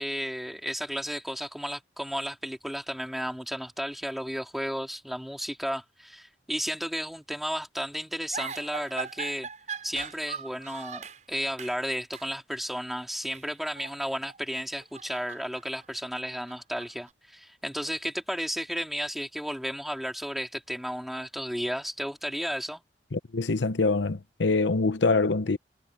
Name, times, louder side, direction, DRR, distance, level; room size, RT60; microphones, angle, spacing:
voice 1, 0.0-9.5 9.8-22.8, equal, ahead, 3.5 m, -33 dB
sound 1, 8.3-11.2 11.6-11.8 12.1-12.3 13.2-14.4 14.7-17.1, right 5 dB, 45° right, 7.1 m, -40 dB
voice 2, 23.1-25.6, left 3 dB, 90° left, 0.8 m, -25 dB
head